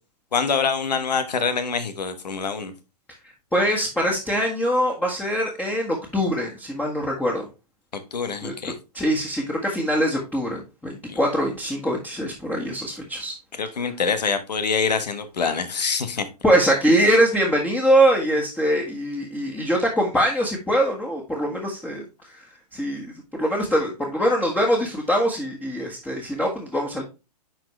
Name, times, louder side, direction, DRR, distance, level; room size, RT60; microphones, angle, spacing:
voice 1, 0.3-2.7 8.1-8.7 11.1-11.2 13.6-16.2, left 5 dB, 85° left, 10 dB, 1.2 m, -25 dB
voice 2, 3.5-7.4 8.4-13.3 16.4-22.0 22.3-22.4 22.7-23.1 23.4-27.0, equal, 5° left, -3 dB, 1.6 m, -23 dB
10.5 x 4.2 x 3.2 m, 0.29 s
hypercardioid pair, 115°, 21 cm